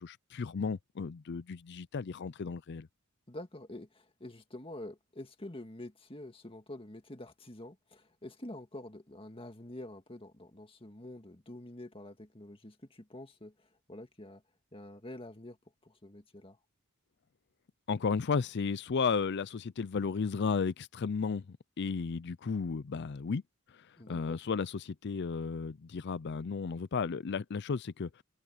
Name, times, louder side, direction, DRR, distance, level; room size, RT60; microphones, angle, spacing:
voice 1, 0.0-2.9 17.9-23.4 23.7-28.2, left 5 dB, 50° left, 0.5 m, -34 dB
voice 2, 3.3-14.4 14.7-15.6 15.8-16.6 24.0-24.4, left 1 dB, 25° left, 2.0 m, -47 dB
head